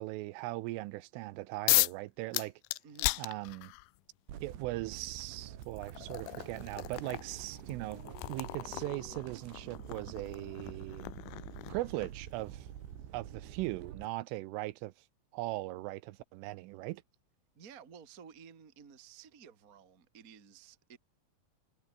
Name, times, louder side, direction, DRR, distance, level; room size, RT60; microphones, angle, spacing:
voice 1, 0.0-2.5 3.2-3.7 4.4-11.1 11.7-12.7 13.1-14.9 15.3-17.0, right 19 dB, 90° right, 3.3 m, -39 dB
sound 1, 1.7-2.0 2.3-3.9 5.0-5.1 5.6-12.3, left 23 dB, 85° left, 2.9 m, -35 dB
voice 2, 2.8-3.2 17.5-21.0, right 7 dB, 35° right, 1.3 m, -54 dB
sound 2, 4.3-14.1, right 10 dB, 65° right, 4.3 m, -47 dB
Dog, 4.4-4.6 4.9-5.0 5.2-5.9 6.6-6.8 7.1-7.2 7.4-7.5 7.6-10.6, left 9 dB, 55° left, 4.2 m, -57 dB
omnidirectional pair, 5.8 m